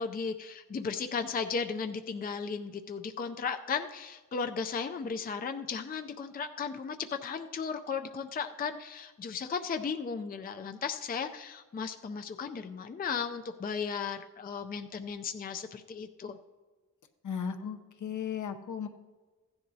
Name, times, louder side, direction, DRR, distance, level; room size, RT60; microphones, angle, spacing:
voice 1, 0.0-16.4, left 5 dB, 30° left, 7 dB, 0.4 m, -35 dB
voice 2, 17.2-18.9, left 7 dB, 65° left, 8 dB, 0.8 m, -36 dB
15.5 x 10.5 x 2.7 m, 1.3 s
wide cardioid pair, 125°, 32 cm